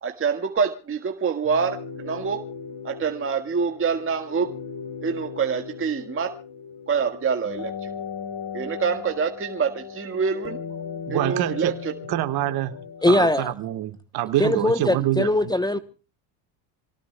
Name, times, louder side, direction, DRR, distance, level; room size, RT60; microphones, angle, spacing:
voice 1, 0.0-2.4 2.8-4.5 5.0-6.3 6.9-7.9 8.5-10.6 11.1-11.9, right 6 dB, 30° right, 1.7 m, -26 dB
sound 1, 1.4-13.4, left 6 dB, 55° left, 4.4 m, -37 dB
voice 2, 11.1-11.7 12.1-12.7 13.1-15.3, right 14 dB, 55° right, 1.6 m, -25 dB
voice 3, 13.0-13.5 14.4-15.8, left 1 dB, 10° left, 0.9 m, -21 dB
27.5 x 17.5 x 2.3 m
supercardioid pair, 90°, 44 cm